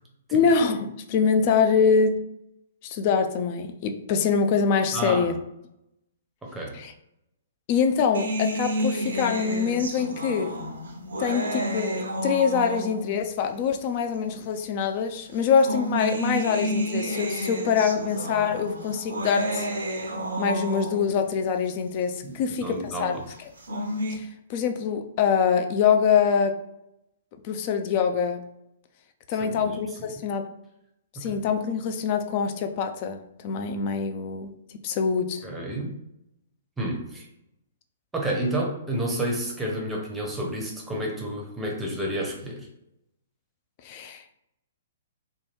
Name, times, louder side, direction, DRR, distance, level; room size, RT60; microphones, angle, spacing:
voice 1, 0.3-2.1 2.8-5.3 6.7-6.9 7.7-10.6 11.2-19.7 20.4-23.1 24.1-26.5 27.4-28.4 29.3-30.4 31.2-34.5 34.8-35.4 43.8-44.2, left 6 dB, 35° left, 6 dB, 0.3 m, -24 dB
voice 2, 4.9-5.3 6.4-6.8 22.2-22.3 22.6-23.2 29.4-29.8 31.2-31.4 35.4-36.0 36.8-37.3 38.1-42.7, right 1 dB, 10° right, -1 dB, 0.7 m, -30 dB
sound 1, 8.1-13.2 14.2-14.3 15.3-21.2 23.4-24.1, equal, 65° right, 0.5 m, -30 dB
2.8 x 2.2 x 3.1 m, 0.81 s
figure-of-eight pair, 115°, 0 cm